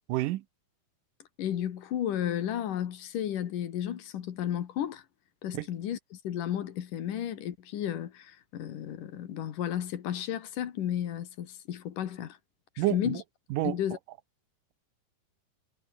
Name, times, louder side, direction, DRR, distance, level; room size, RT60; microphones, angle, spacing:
voice 1, 0.1-0.4 5.5-5.7 12.8-13.2 13.5-13.8, right 16 dB, 80° right, 2.4 m, -28 dB
voice 2, 1.4-5.0 5.4-12.4 12.8-13.2 13.6-14.0, left 10 dB, 75° left, 3.3 m, -33 dB
omnidirectional pair, 3.8 m